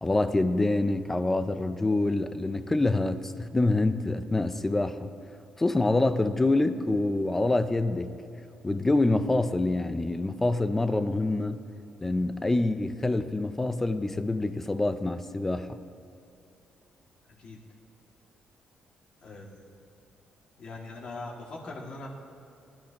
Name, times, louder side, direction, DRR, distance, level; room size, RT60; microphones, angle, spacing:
voice 1, 0.0-5.1 5.6-8.2 8.6-11.6 12.0-15.8, left 2 dB, 10° left, 10 dB, 0.5 m, -26 dB
voice 2, 17.2-17.6 19.2-19.7 20.6-22.1, left 3 dB, 45° left, -2 dB, 2.3 m, -41 dB
20.5 x 13.0 x 3.0 m, 2.7 s
cardioid pair, 170°, 3 cm